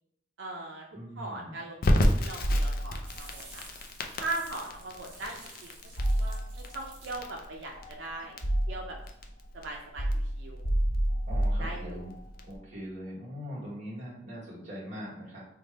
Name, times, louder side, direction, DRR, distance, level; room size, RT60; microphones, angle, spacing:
voice 1, 0.4-0.8 1.2-3.6 4.2-5.7 6.2-8.4 8.7-9.0 9.5-10.1 10.4-10.7 11.6-12.1, right 2 dB, 85° right, 0 dB, 0.5 m, -39 dB
voice 2, 0.9-1.6 11.3-12.1 12.4-15.4, equal, 40° right, -7 dB, 1.4 m, -41 dB
Crackle, 1.8-12.6, left 1 dB, 50° left, 0.4 m, -32 dB
sound 1, 2.4-3.3 6.0-6.8 7.7-9.1 10.0-12.2, right 1 dB, 80° left, 1.0 m, -29 dB
sound 2, 3.0-8.2, right 3 dB, 70° right, 1.1 m, -52 dB
3.3 x 2.2 x 4.0 m, 0.76 s
head